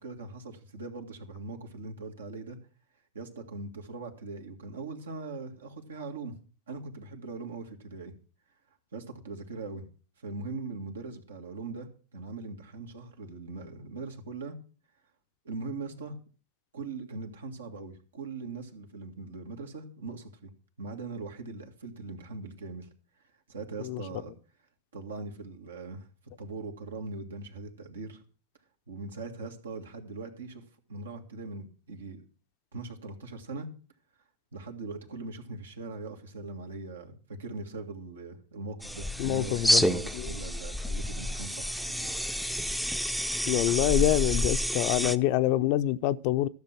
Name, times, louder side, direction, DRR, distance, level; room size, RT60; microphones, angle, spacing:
voice 1, 0.0-2.6 3.1-6.3 6.7-8.1 8.9-9.8 10.2-14.6 15.4-16.2 16.7-20.5 20.8-22.9 23.5-24.3 24.9-26.1 26.4-28.2 28.9-30.6 30.9-32.2 32.7-33.7 34.5-42.1, right 3 dB, 80° right, 1.9 m, -40 dB
sound 1, 38.8-45.2, equal, ahead, 0.6 m, -29 dB
voice 2, 39.2-39.8 40.1-40.3 43.1-43.2 43.5-46.5, left 14 dB, 55° left, 0.6 m, -26 dB
13.0 x 6.8 x 5.9 m
hypercardioid pair, 95°, 0 cm